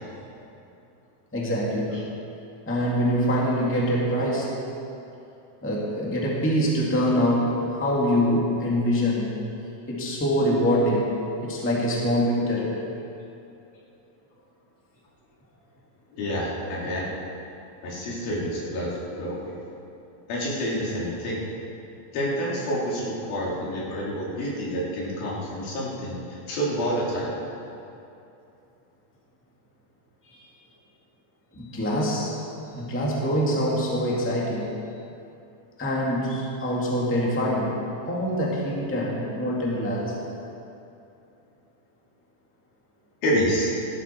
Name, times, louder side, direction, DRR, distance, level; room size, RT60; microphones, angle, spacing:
voice 1, 1.3-2.0 2.6-4.6 5.6-9.3 9.9-12.8 30.3-30.4 31.5-32.3 32.7-34.7 35.8-37.8 38.1-40.1, equal, 5° left, -4 dB, 1.4 m, -24 dB
voice 2, 16.1-17.0 17.8-19.5 20.3-21.4 22.1-27.4 43.2-43.7, equal, 85° left, -5 dB, 4.5 m, -28 dB
16.5 x 12.5 x 4.5 m, 2.7 s
omnidirectional pair, 4.1 m